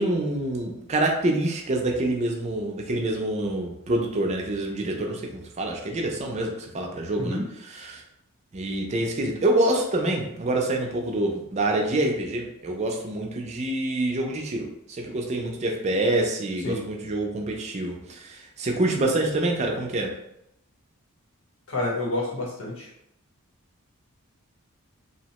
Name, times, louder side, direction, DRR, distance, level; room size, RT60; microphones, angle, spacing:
voice 1, 0.0-7.4 7.7-8.0 8.5-20.1, right 1 dB, 30° right, 1 dB, 0.4 m, -26 dB
voice 2, 21.7-22.9, left 2 dB, 65° left, -4 dB, 0.9 m, -29 dB
2.7 x 2.0 x 2.8 m, 0.80 s
head